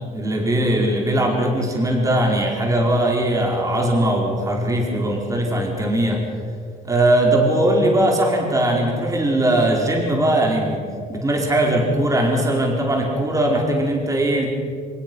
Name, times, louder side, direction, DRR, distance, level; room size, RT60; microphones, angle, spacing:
voice 1, 0.0-6.2 6.8-10.8 11.1-14.5, right 1 dB, 20° right, 0 dB, 4.8 m, -20 dB
24.5 x 21.0 x 6.3 m, 2.4 s
cardioid pair, 110°, 17 cm